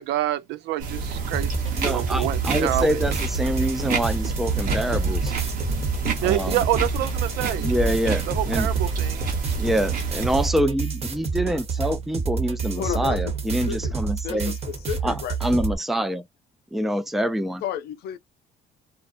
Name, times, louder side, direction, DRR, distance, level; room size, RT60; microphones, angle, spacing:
voice 1, 0.0-1.5 1.8-3.0 6.2-7.7 8.3-9.3 11.5-11.6, right 13 dB, 85° right, 0.4 m, -27 dB
sound 1, 0.8-10.5, right 3 dB, 55° right, 0.9 m, -29 dB
sound 2, 1.3-15.7, right 5 dB, 40° right, 1.0 m, -28 dB
voice 2, 1.8-5.3 6.2-6.6 7.6-8.7 9.6-14.5 15.0-15.1 15.4-16.2 16.7-17.6, equal, ahead, 0.3 m, -26 dB
voice 3, 12.7-13.9 14.2-15.4 17.6-18.2, left 10 dB, 70° left, 0.5 m, -32 dB
2.4 x 2.1 x 2.5 m
cardioid pair, 110°, 17 cm